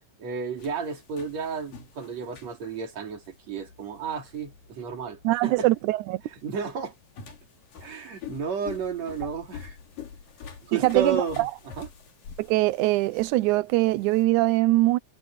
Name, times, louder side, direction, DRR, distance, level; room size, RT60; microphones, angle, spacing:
voice 1, 0.2-5.7 6.4-6.9 7.8-9.8 10.6-11.5 11.8-11.9, right 6 dB, 55° right, 4.0 m, -32 dB
sound 1, 0.6-14.2, left 7 dB, 85° left, 5.1 m, -46 dB
voice 2, 5.2-6.2 10.7-11.5 12.4-15.0, right 18 dB, 80° right, 1.9 m, -22 dB
omnidirectional pair, 3.8 m